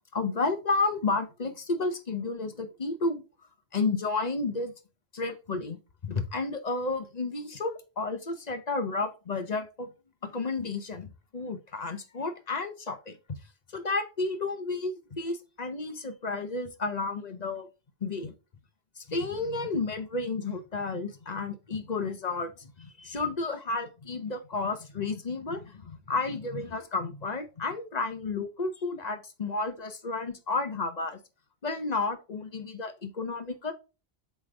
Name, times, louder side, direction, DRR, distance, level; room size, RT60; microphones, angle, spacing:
voice 1, 0.1-3.2 3.7-4.7 5.1-9.9 10.2-13.2 13.7-17.7 18.0-18.3 19.0-31.2 31.6-33.7, left 3 dB, 45° left, 1.0 m, -32 dB
7.8 x 3.5 x 3.7 m
omnidirectional pair, 1.1 m